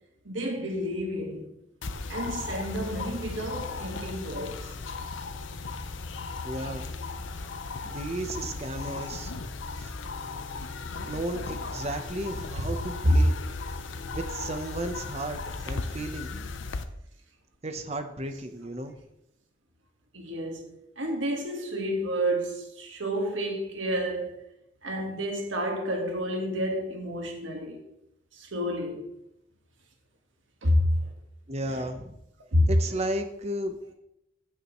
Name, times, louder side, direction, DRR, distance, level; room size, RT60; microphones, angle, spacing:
voice 1, 0.2-1.5 2.1-4.6 13.0-13.1 20.1-20.7 21.0-24.4 24.8-27.8 28.4-29.1 30.6-31.1 31.7-31.8 32.5-32.7, equal, 90° right, 1.7 m, -29 dB
sound 1, 1.8-16.8, left 3 dB, 80° left, 0.7 m, -36 dB
voice 2, 6.4-6.9 7.8-9.5 11.0-13.3 14.1-15.4 15.6-16.3 17.6-19.0 31.5-32.2 32.7-33.9, right 1 dB, 35° right, 1.0 m, -34 dB
15.5 x 5.8 x 3.1 m
head